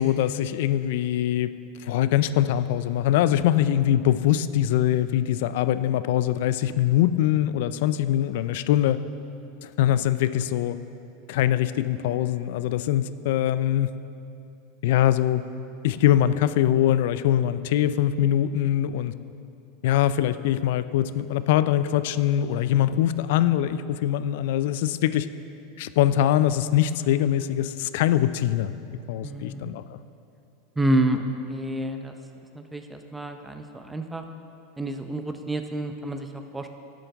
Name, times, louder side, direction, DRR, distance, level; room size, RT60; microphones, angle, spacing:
voice 1, 0.0-1.5 1.8-9.0 9.6-10.8 11.3-13.9 14.8-15.4 15.8-19.1 19.8-25.3 25.8-28.7 29.1-30.0, left 12 dB, 70° left, 14 dB, 0.3 m, -23 dB
voice 2, 29.2-29.7 30.8-32.2 32.5-34.2 34.8-36.7, right 1 dB, 10° right, 6 dB, 0.6 m, -28 dB
11.0 x 7.7 x 3.5 m, 2.7 s
hypercardioid pair, 105°, 0 cm